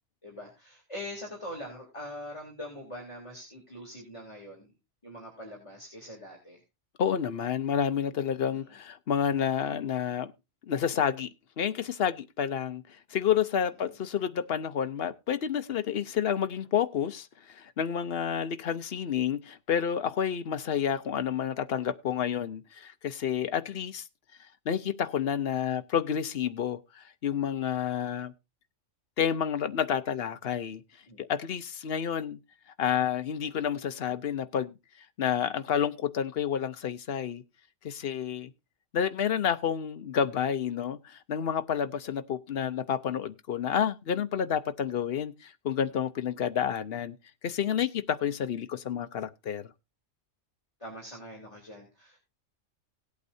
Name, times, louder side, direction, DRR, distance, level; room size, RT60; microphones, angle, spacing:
voice 1, 0.2-4.7 5.0-6.6 8.5-8.6 31.1-31.2 50.8-52.3, equal, 25° left, 3.1 m, -43 dB
voice 2, 7.0-10.3 10.7-11.3 11.6-12.8 13.1-24.0 24.7-28.3 29.2-30.8 31.2-32.4 32.8-34.8 35.2-37.4 37.8-38.5 38.9-47.1 47.4-49.7, left 8 dB, 55° left, 0.9 m, -29 dB
18.0 x 8.4 x 2.7 m
omnidirectional pair, 1.4 m